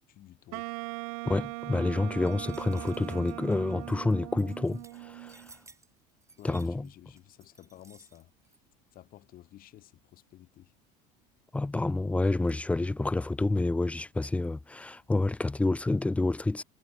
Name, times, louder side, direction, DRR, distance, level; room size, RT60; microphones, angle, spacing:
voice 1, 0.1-0.7 6.4-8.6 8.9-10.7, left 14 dB, 50° left, 1.6 m, -52 dB
Wind instrument woodwind instrument, 0.5-5.5, right 27 dB, 80° right, 1.1 m, -40 dB
voice 2, 1.2-5.5 6.4-6.9 11.5-16.6, left 2 dB, 5° left, 0.3 m, -28 dB
sound 1, 2.3-8.6, right 3 dB, 15° right, 7.9 m, -58 dB
supercardioid pair, 100°, 19 cm